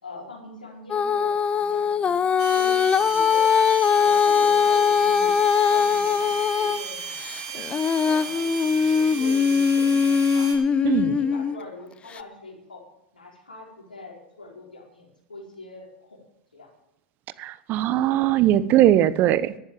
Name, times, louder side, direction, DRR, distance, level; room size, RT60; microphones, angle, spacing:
voice 1, 0.0-2.1 2.5-3.5 3.9-5.3 5.7-7.1 7.5-10.5 11.1-12.8 13.1-16.2 16.5-16.7, left 3 dB, 90° left, -1 dB, 4.6 m, -42 dB
Female singing, 0.9-6.8 7.2-11.6 12.2-12.3, left 6 dB, 25° left, 0.7 m, -21 dB
sound 1, 2.4-10.6, right 6 dB, 60° right, 4.5 m, -36 dB
voice 2, 10.8-11.2 17.4-19.6, right 12 dB, 45° right, 16 dB, 0.9 m, -20 dB
12.5 x 10.0 x 7.2 m, 0.83 s
hypercardioid pair, 90°, 5 cm